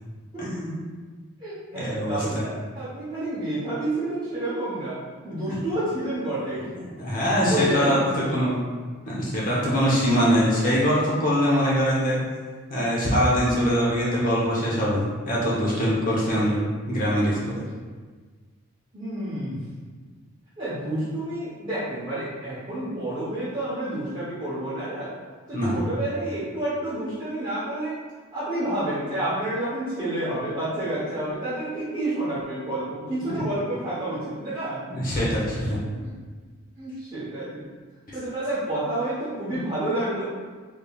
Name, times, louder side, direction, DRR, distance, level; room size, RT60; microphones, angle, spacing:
voice 1, 0.4-0.8 1.7-2.2 7.0-8.0 8.3-8.6 9.0-12.2 12.7-17.6 25.5-25.8 33.2-33.4 34.9-35.9, equal, 40° left, -7 dB, 0.9 m, -23 dB
voice 2, 1.4-2.5 2.7-5.0 5.2-6.7 7.4-8.4 18.9-19.6 20.6-25.1 25.5-27.9 28.3-34.8 35.7-36.1 36.8-37.6 38.1-40.3, right 1 dB, 25° right, -13 dB, 0.9 m, -29 dB
3.6 x 3.4 x 2.3 m, 1.4 s
head